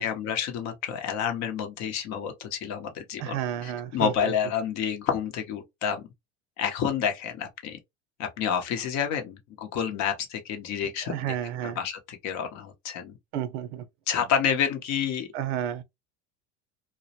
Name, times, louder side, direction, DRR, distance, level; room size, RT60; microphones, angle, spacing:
voice 1, 0.0-6.1 6.6-7.8 8.2-11.4 11.6-13.2 14.1-15.3, left 8 dB, 50° left, 0.8 m, -29 dB
voice 2, 3.2-4.3 11.0-11.8 13.3-13.9 15.3-15.8, right 10 dB, 70° right, 0.6 m, -31 dB
2.2 x 2.0 x 2.7 m
supercardioid pair, 105°, 35 cm